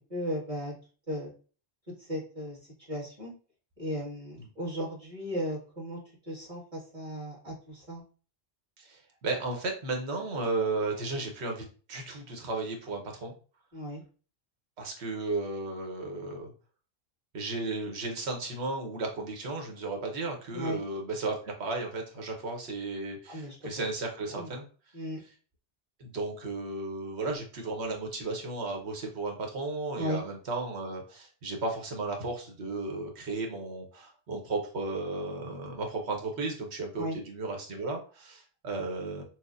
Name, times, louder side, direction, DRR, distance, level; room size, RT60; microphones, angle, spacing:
voice 1, 0.1-0.7 1.1-1.3 2.0-2.6 2.9-3.3 3.8-6.0 6.2-8.0 13.7-14.0 20.5-20.8 23.3-23.6 24.3-24.5 24.9-25.2 30.0-30.2 37.0-37.2, equal, 30° right, -6 dB, 1.9 m, -35 dB
voice 2, 8.8-13.3 14.8-16.5 17.3-24.7 26.0-39.2, right 3 dB, 80° right, 2 dB, 1.2 m, -34 dB
6.2 x 2.1 x 2.5 m, 0.39 s
omnidirectional pair, 1.1 m